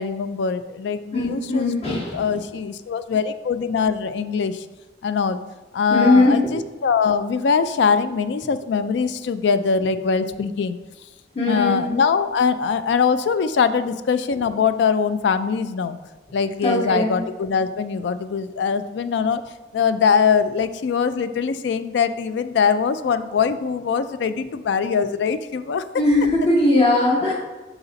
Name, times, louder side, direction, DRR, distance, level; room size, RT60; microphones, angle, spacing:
voice 1, 0.0-4.7 5.0-5.4 5.7-10.8 11.5-16.0 16.3-19.4 19.7-25.8, left 6 dB, 65° left, 12 dB, 0.3 m, -22 dB
voice 2, 1.1-2.2 5.9-6.5 11.3-11.8 16.6-17.2 26.0-27.3, left 2 dB, 35° left, -7 dB, 1.1 m, -19 dB
5.8 x 4.1 x 3.9 m, 1.2 s
head